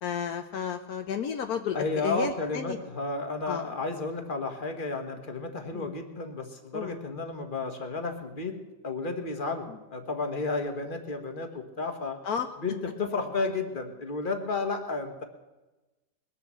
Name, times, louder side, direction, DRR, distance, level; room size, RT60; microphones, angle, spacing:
voice 1, 0.0-2.8 3.5-3.7 5.7-6.0 6.7-6.9 12.2-12.5, left 7 dB, 70° left, 6 dB, 1.3 m, -32 dB
voice 2, 1.7-12.2 12.6-15.2, left 3 dB, 35° left, 5 dB, 1.5 m, -32 dB
21.0 x 7.1 x 7.5 m, 1.1 s
omnidirectional pair, 1.7 m